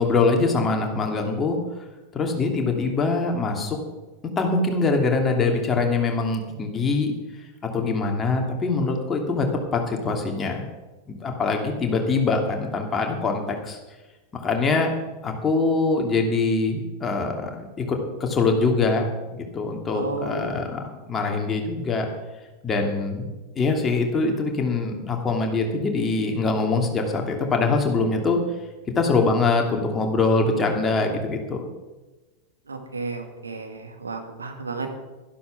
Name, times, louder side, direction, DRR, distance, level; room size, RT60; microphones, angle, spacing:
voice 1, 0.0-1.6 2.1-3.8 4.4-7.1 7.7-9.5 9.7-10.6 11.1-13.8 14.4-14.9 15.2-19.1 19.3-20.8 21.1-22.1 22.6-23.3 23.5-28.4 28.9-31.6, left 3 dB, 20° left, 2 dB, 2.7 m, -23 dB
voice 2, 19.9-20.7 32.7-34.9, right 4 dB, 75° right, 5 dB, 2.0 m, -32 dB
12.5 x 11.5 x 6.1 m, 1.2 s
figure-of-eight pair, 90°, 0 cm